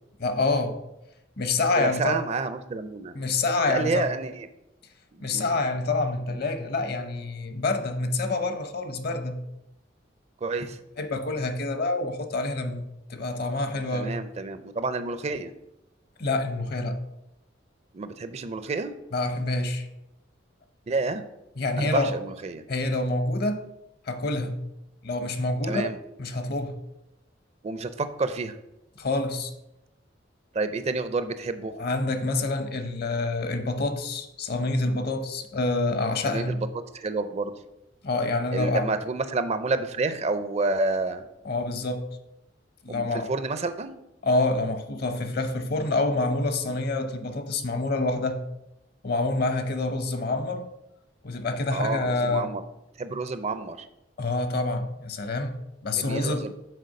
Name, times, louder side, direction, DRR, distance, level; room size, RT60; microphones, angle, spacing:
voice 1, 0.2-0.8 1.4-2.2 3.1-4.1 5.2-9.4 11.0-12.8 13.1-14.1 16.2-17.0 19.1-19.9 21.6-22.1 22.7-23.7 24.1-24.6 25.0-25.8 26.2-26.8 29.0-29.5 31.8-36.5 38.0-38.9 41.4-42.1 42.8-43.3 44.2-48.4 49.0-50.7 51.2-52.5 54.2-56.5, left 2 dB, 55° left, 0.8 m, -27 dB
voice 2, 1.8-3.1 3.7-4.5 5.1-5.6 10.4-10.8 13.9-15.5 17.9-18.9 20.9-21.2 21.8-22.6 25.7-26.0 27.6-28.6 30.5-31.7 36.3-36.7 36.9-37.5 38.5-41.2 42.9-44.0 51.7-52.6 53.0-53.9 55.9-56.5, right 3 dB, 35° right, 0.4 m, -29 dB
6.6 x 4.4 x 6.4 m
head